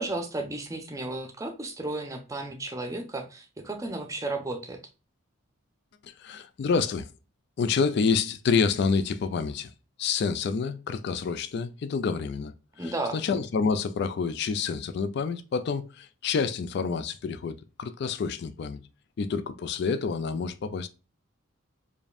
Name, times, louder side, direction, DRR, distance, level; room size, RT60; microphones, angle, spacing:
voice 1, 0.0-4.8 12.8-13.2, right 2 dB, 15° right, 0.6 m, -33 dB
voice 2, 6.2-7.1 7.6-9.7 10.0-12.5 12.8-18.8 19.2-20.9, left 5 dB, 55° left, 0.3 m, -28 dB
5.0 x 2.6 x 2.4 m
head